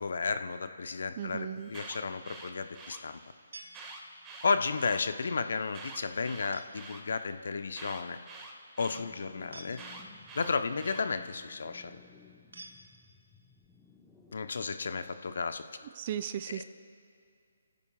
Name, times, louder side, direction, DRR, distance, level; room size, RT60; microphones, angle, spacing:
voice 1, 0.0-3.2 4.4-8.2 8.8-9.8 10.3-12.0 14.3-15.6 16.5-16.6, left 4 dB, 60° left, 9 dB, 0.8 m, -33 dB
voice 2, 1.2-1.7 16.0-16.6, right 10 dB, 35° right, 13 dB, 0.6 m, -36 dB
Alarm, 1.5-3.0 3.7-5.0 5.7-7.0 7.7-9.0 9.7-11.0, right 3 dB, 20° right, 1.8 m, -47 dB
sound 1, 3.5-4.5 6.5-7.0 9.5-10.4 12.5-13.4, right 3 dB, 65° right, 1.3 m, -51 dB
sound 2, 8.8-14.3, left 5 dB, 10° left, 1.1 m, -58 dB
27.0 x 16.0 x 2.4 m, 2.3 s
figure-of-eight pair, 140°, 0 cm